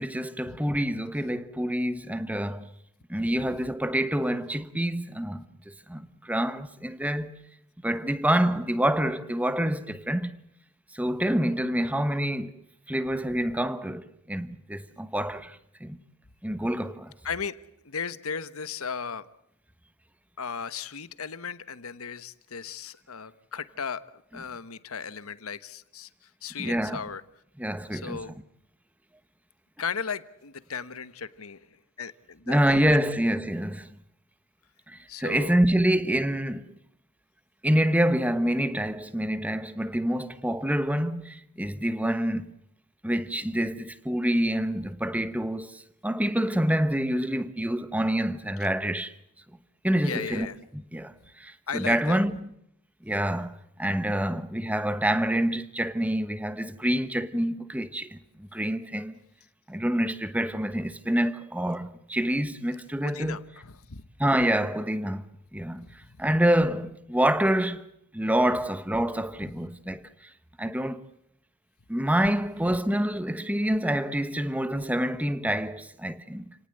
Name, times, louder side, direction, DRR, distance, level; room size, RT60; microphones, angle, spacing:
voice 1, 0.0-2.7 3.1-7.3 7.8-10.4 10.9-12.5 12.9-16.0 16.4-17.1 26.6-27.0 27.6-28.2 32.5-33.9 34.9-36.7 37.6-42.5 43.0-49.1 49.8-50.5 50.7-52.5 53.0-59.2 59.7-63.4 64.2-65.2 65.5-65.9 66.2-67.9 68.1-70.1 70.6-71.0 71.9-76.5, right 1 dB, 5° right, 1.0 m, -27 dB
voice 2, 17.2-19.3 20.4-27.2 27.9-28.3 29.8-31.7 32.0-33.0 35.1-35.6 50.0-50.5 51.7-52.2 63.0-64.0 66.1-66.2, left 6 dB, 75° left, 1.2 m, -36 dB
29.5 x 18.5 x 7.8 m
head